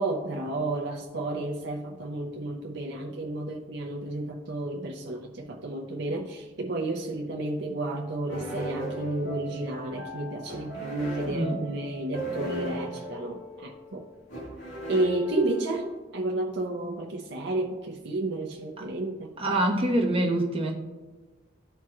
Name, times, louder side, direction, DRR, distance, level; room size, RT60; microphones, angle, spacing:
voice 1, 0.0-14.0 14.9-15.9 16.1-19.3, right 2 dB, 60° right, 1 dB, 0.6 m, -31 dB
sound 1, 8.3-16.0, right 1 dB, 65° left, 2.2 m, -37 dB
voice 2, 11.3-11.7 18.8-18.9 19.4-20.7, right 1 dB, 30° right, -2 dB, 1.2 m, -25 dB
13.5 x 4.6 x 2.4 m, 1.2 s
head